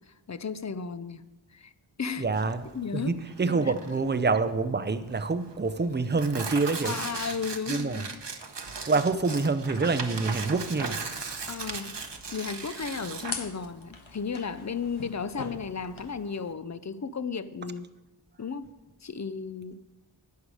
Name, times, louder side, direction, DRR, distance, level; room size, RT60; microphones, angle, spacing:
voice 1, 0.1-1.7 2.0-2.3 2.7-3.2 6.8-8.3 11.5-12.0 12.3-17.9 18.4-18.7 19.0-19.8, left 5 dB, 40° left, 0.5 m, -34 dB
voice 2, 2.2-2.6 2.9-7.0 7.7-8.0 8.9-11.0, right 4 dB, 25° right, 0.5 m, -26 dB
Tearing, 2.2-16.5, right 4 dB, 60° right, 0.9 m, -38 dB
sound 1, 10.6-16.2, left 4 dB, 85° left, 1.0 m, -44 dB
11.5 x 8.3 x 4.9 m
wide cardioid pair, 40°, 47 cm